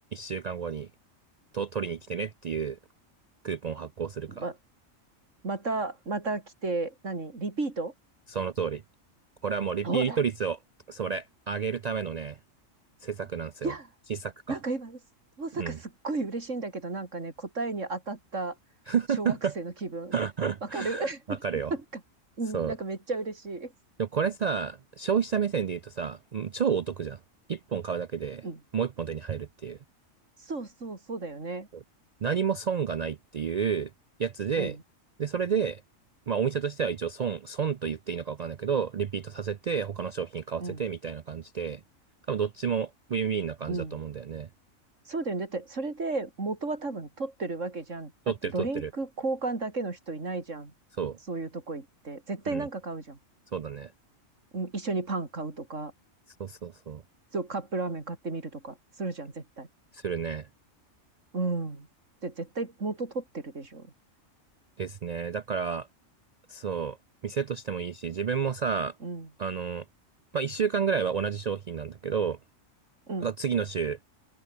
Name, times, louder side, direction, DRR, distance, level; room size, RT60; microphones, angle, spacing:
voice 1, 0.1-0.9 1.5-2.8 3.4-4.4 8.3-8.8 9.4-10.6 10.9-12.4 13.0-13.7 14.1-14.6 15.6-15.8 18.9-19.6 20.1-21.7 22.5-22.7 24.0-27.2 27.5-28.5 28.7-29.8 31.7-31.8 32.2-33.9 34.2-34.8 35.2-35.8 36.3-41.8 42.3-44.5 48.3-48.9 51.0-51.2 52.5-52.6 53.5-53.9 56.4-57.0 59.9-60.5 64.8-65.9 66.5-67.0 67.2-68.9 69.4-69.8 70.3-72.4 73.2-74.0, right 6 dB, 85° right, 0.3 m, -30 dB
voice 2, 5.4-7.9 9.8-10.2 13.6-13.9 14.5-15.0 15.4-18.6 19.2-20.2 20.6-21.4 21.7-21.8 22.4-23.7 28.4-28.6 30.4-31.7 34.5-34.8 40.6-40.8 43.7-44.0 45.1-50.7 51.3-53.2 54.5-55.9 57.3-59.7 61.3-61.9 62.2-63.9 69.0-69.3 73.1-73.3, right 3 dB, 65° right, 3.7 m, -33 dB
open air
omnidirectional pair, 1.4 m